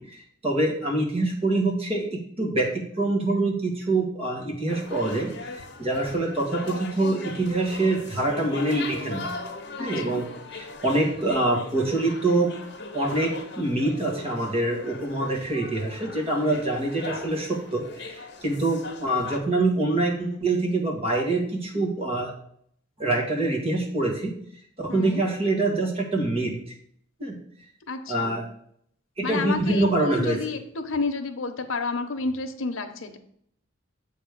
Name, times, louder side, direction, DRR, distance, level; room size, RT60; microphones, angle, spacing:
voice 1, 0.1-5.3 5.8-9.3 9.8-10.3 10.5-12.5 12.9-22.3 23.0-24.3 24.8-26.6 27.2-27.4 28.1-28.5 29.2-30.4, right 2 dB, 30° right, 0 dB, 1.7 m, -25 dB
sound 1, 4.7-19.4, left 3 dB, 55° left, 1.0 m, -39 dB
voice 2, 9.8-10.2 24.9-25.2 27.9-28.4 29.2-33.2, left 3 dB, 90° left, 7 dB, 0.9 m, -30 dB
7.6 x 3.6 x 6.5 m, 0.67 s
head